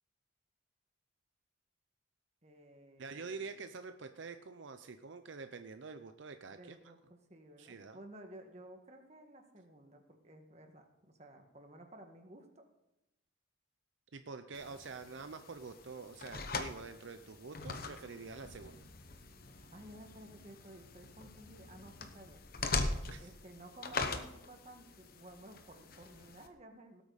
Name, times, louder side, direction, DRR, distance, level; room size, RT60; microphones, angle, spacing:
voice 1, 2.4-3.5 6.5-12.6 19.7-22.5 23.2-27.0, right 1 dB, 35° right, 4 dB, 1.7 m, -55 dB
voice 2, 3.0-6.7 7.6-8.0 14.1-18.8 23.0-23.3, right 4 dB, 70° right, 8 dB, 0.6 m, -47 dB
sound 1, 14.5-26.5, left 3 dB, 50° left, 1.0 m, -42 dB
18.5 x 8.4 x 4.1 m, 0.89 s
head